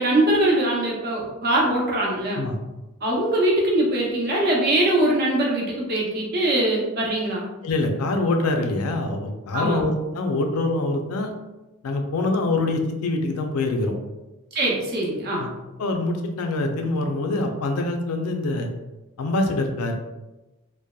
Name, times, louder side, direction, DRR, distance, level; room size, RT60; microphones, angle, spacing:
voice 1, 0.0-2.4 3.0-7.5 9.5-9.8 14.5-15.4, right 1 dB, 45° right, -3 dB, 0.6 m, -22 dB
voice 2, 7.6-11.3 11.8-13.9 15.3-15.5 15.8-18.7 19.2-19.9, left 2 dB, 80° left, 4 dB, 0.4 m, -24 dB
2.7 x 2.1 x 2.2 m, 1.0 s
head